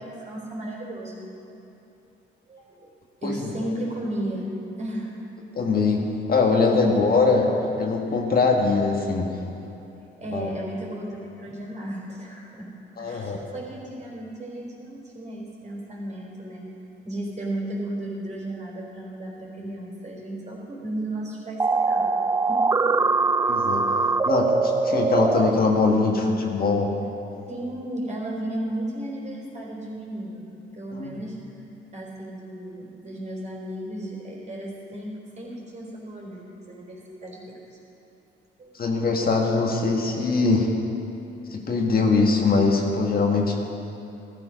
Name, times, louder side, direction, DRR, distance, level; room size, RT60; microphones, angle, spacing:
voice 1, 0.0-1.4 2.5-2.9 3.2-4.5 4.8-5.2 7.7-7.8 10.2-12.7 13.0-16.7 17.0-22.7 27.5-31.4 31.9-37.8 38.6-38.8, right 1 dB, 35° right, -3 dB, 4.3 m, -34 dB
voice 2, 5.5-7.5 7.8-9.3 10.3-10.5 13.0-13.4 23.4-23.9 24.3-26.9 30.9-31.1 38.8-40.7 41.5-43.6, left 4 dB, 50° left, 1 dB, 1.8 m, -22 dB
sound 1, 21.6-25.5, right 4 dB, 15° right, 0.3 m, -22 dB
14.5 x 13.5 x 5.3 m, 2.9 s
cardioid pair, 90°, 20 cm